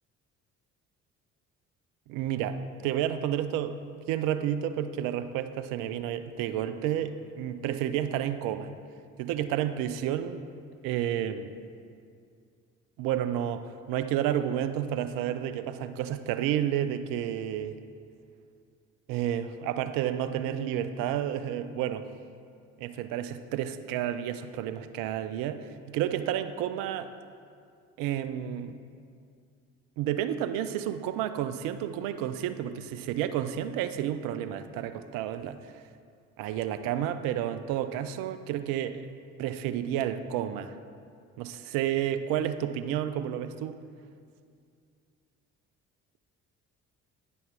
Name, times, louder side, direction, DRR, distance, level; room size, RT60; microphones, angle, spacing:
voice 1, 2.1-8.7 9.2-10.5 10.8-11.5 13.0-17.8 19.1-22.1 22.8-27.1 28.0-28.8 30.0-35.6 36.4-39.0 39.4-40.8 41.4-43.8, right 10 dB, 65° right, 11 dB, 0.5 m, -31 dB
9.1 x 5.5 x 4.6 m, 2.3 s
hypercardioid pair, 50°, 35 cm